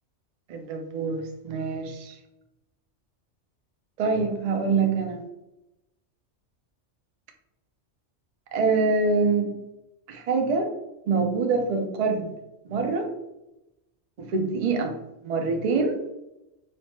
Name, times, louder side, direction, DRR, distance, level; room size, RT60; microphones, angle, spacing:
voice 1, 0.5-2.2 4.0-5.2 8.5-9.5 10.1-10.7 11.1-12.3 12.6-13.1 14.2-14.9 15.2-16.0, right 4 dB, 65° right, 4 dB, 0.4 m, -25 dB
3.1 x 2.1 x 2.8 m, 0.92 s
omnidirectional pair, 1.2 m